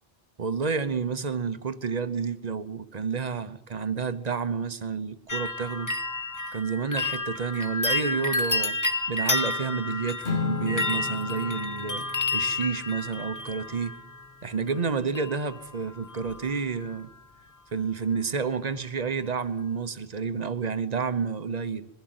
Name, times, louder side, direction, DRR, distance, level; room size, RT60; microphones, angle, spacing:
voice 1, 0.4-5.9 6.5-8.8 9.1-12.1 12.3-14.0 14.4-17.1 17.7-21.9, right 5 dB, 40° right, 1.0 m, -30 dB
sound 1, 5.3-14.2 15.1-15.7 15.9-16.5 16.8-16.9, left 2 dB, 20° left, 1.0 m, -30 dB
Acoustic guitar / Strum, 10.2-14.7, left 6 dB, 85° left, 2.3 m, -36 dB
22.0 x 15.5 x 7.8 m
omnidirectional pair, 1.1 m